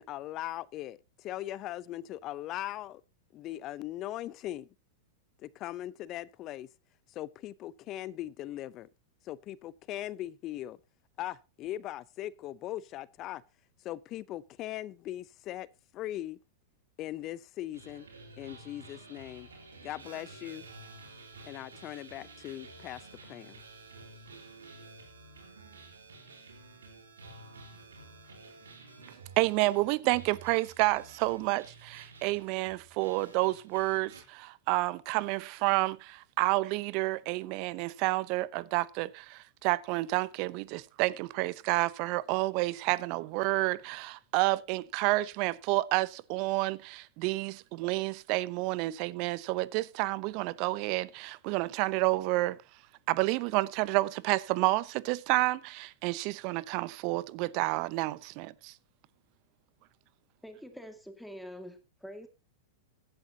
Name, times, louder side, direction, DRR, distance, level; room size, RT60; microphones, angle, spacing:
voice 1, 0.0-3.0 3.3-4.7 5.4-6.7 7.1-8.9 9.2-10.8 11.2-13.4 13.8-15.7 15.9-16.4 17.0-18.1 18.4-19.5 19.8-20.7 21.5-23.6, left 14 dB, 40° left, 0.6 m, -39 dB
sound 1, 17.7-34.2, right 3 dB, 85° right, 3.9 m, -51 dB
voice 2, 29.4-52.6 53.1-58.7, right 20 dB, 50° right, 0.7 m, -30 dB
voice 3, 60.4-62.3, equal, ahead, 2.1 m, -45 dB
16.0 x 11.5 x 2.8 m
hypercardioid pair, 105°, 0 cm